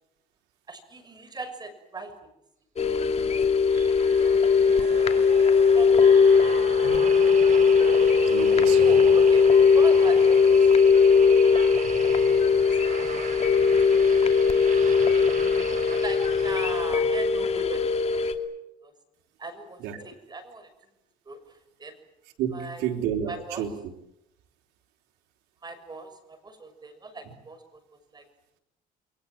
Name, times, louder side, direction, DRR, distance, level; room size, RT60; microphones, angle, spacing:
voice 1, 0.7-2.3 3.3-3.4 3.7-4.0 4.6-4.7 5.3-5.4 5.7-6.2 6.5-6.6 8.8-11.2 11.4-11.6 12.6-13.4 14.0-14.4 15.9-18.0 18.8-18.9 19.4-20.7 21.2-21.9 22.5-22.8 23.3-23.6 25.6-27.8 28.1-28.2, right 3 dB, 25° right, 8 dB, 6.5 m, -39 dB
sound 1, 2.8-18.3, left 5 dB, 40° left, 2.7 m, -19 dB
sound 2, 3.7-17.2 17.8-18.0, right 6 dB, 50° right, 5.7 m, -38 dB
voice 2, 8.2-9.1 19.8-20.0 22.4-23.9 27.2-27.3, right 9 dB, 85° right, 2 dB, 4.0 m, -31 dB
29.5 x 23.5 x 7.5 m, 0.87 s
cardioid pair, 110°, 17 cm